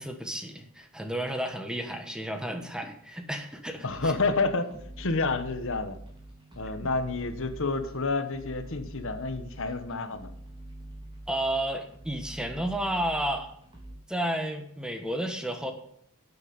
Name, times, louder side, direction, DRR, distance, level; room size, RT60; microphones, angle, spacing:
voice 1, 0.0-4.1 11.3-13.5 14.1-15.7, right 1 dB, 5° right, 6 dB, 1.3 m, -32 dB
voice 2, 3.8-4.7 5.0-6.0 6.6-10.3, left 3 dB, 60° left, 10 dB, 1.2 m, -29 dB
sound 1, 3.9-14.0, right 1 dB, 20° right, 3.5 m, -45 dB
12.0 x 8.4 x 5.3 m, 0.68 s
head